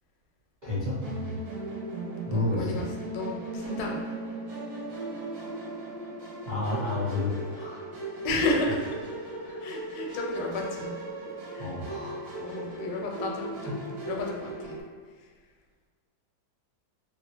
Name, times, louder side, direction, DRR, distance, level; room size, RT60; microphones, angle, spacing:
voice 1, 0.6-1.4 2.2-2.7 6.5-7.8 9.4-9.6 11.6-12.2 13.6-13.7, left 2 dB, 40° right, -12 dB, 0.7 m, -31 dB
Musical instrument, 1.0-14.8, right 2 dB, 65° right, 1.1 m, -37 dB
voice 2, 2.2-4.0 8.2-8.8 9.6-10.9 11.5-11.7 12.4-14.8 15.2-15.3, left 2 dB, 85° left, -1 dB, 1.2 m, -32 dB
2.9 x 2.1 x 2.8 m, 1.5 s
omnidirectional pair, 2.0 m